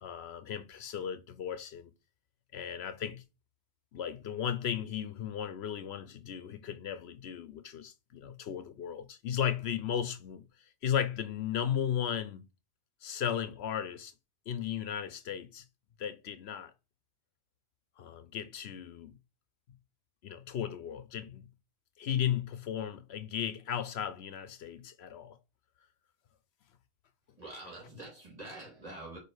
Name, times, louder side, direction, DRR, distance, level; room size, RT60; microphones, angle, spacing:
voice 1, 0.0-1.9 2.5-3.2 3.9-10.4 10.8-12.4 13.0-14.1 14.5-15.6 16.0-16.7 18.0-19.2 20.2-21.4 22.0-25.4, left 9 dB, 75° left, 0.9 m, -35 dB
voice 2, 27.4-29.2, right 2 dB, 35° right, 3.3 m, -45 dB
4.9 x 4.5 x 4.7 m
omnidirectional pair, 1.1 m